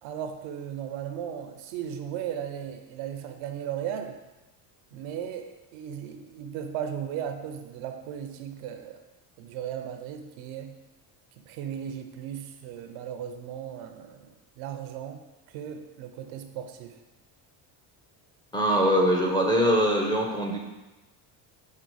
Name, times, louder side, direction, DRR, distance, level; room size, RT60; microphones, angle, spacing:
voice 1, 0.0-4.2 4.9-9.0 9.4-10.8 11.5-15.2 15.5-17.0, right 9 dB, 70° right, 6 dB, 0.6 m, -36 dB
voice 2, 18.5-20.6, equal, 10° left, -1 dB, 0.6 m, -22 dB
6.1 x 2.1 x 4.0 m, 1.1 s
supercardioid pair, 100°, 49 cm